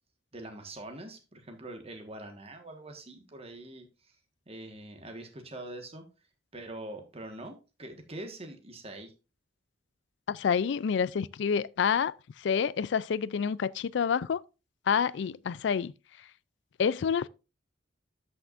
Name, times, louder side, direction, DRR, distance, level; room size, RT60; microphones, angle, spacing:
voice 1, 0.3-3.9 4.5-6.1 6.5-9.1, right 1 dB, 35° right, 1.5 m, -44 dB
voice 2, 10.3-14.4 14.9-15.9 16.8-17.3, left 6 dB, 70° left, 0.4 m, -28 dB
13.0 x 5.8 x 2.5 m
head